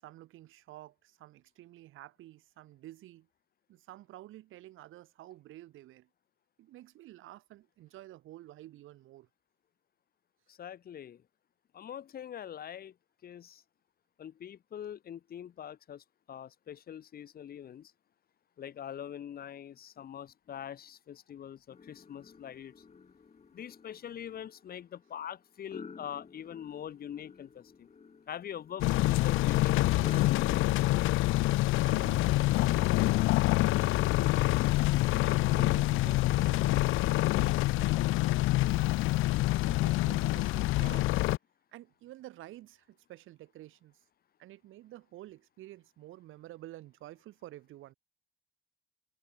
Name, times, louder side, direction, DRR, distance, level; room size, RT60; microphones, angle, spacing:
voice 1, 0.0-3.3 3.7-6.1 6.6-9.3 31.8-34.5 35.2-39.0 39.5-41.3 41.7-44.0 44.4-47.9, right 15 dB, 90° right, 7.7 m, -51 dB
voice 2, 10.5-11.2 11.7-12.9 13.2-13.6 14.2-17.9 18.6-22.7 23.5-27.9 28.3-30.6, left 9 dB, 50° left, 0.8 m, -43 dB
sound 1, 21.7-31.3, left 5 dB, 35° left, 1.5 m, -50 dB
sound 2, 28.8-41.4, left 18 dB, 90° left, 0.5 m, -26 dB
cardioid pair, 90°, 20 cm